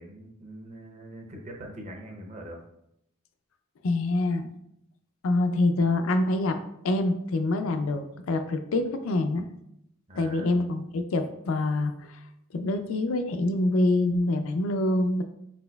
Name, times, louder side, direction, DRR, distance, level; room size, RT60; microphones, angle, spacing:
voice 1, 0.0-2.6 10.1-10.5, right 1 dB, 30° right, 1 dB, 0.6 m, -43 dB
voice 2, 3.8-4.5 5.2-6.6 6.8-9.4 10.2-12.2 12.5-15.2, left 2 dB, 70° left, 7 dB, 0.4 m, -25 dB
4.4 x 4.1 x 2.2 m, 0.79 s
head